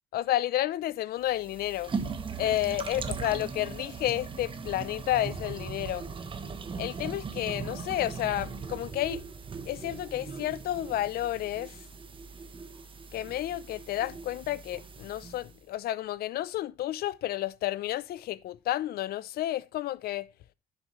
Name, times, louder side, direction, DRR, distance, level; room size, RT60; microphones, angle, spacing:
voice 1, 0.1-1.9 2.4-6.0 6.8-9.2 9.6-11.8 13.1-20.3, left 14 dB, 65° left, 0.6 m, -31 dB
sound 1, 1.3-15.6, right 5 dB, 30° right, 1.1 m, -39 dB
10.5 x 7.2 x 3.2 m
cardioid pair, 110°, 17 cm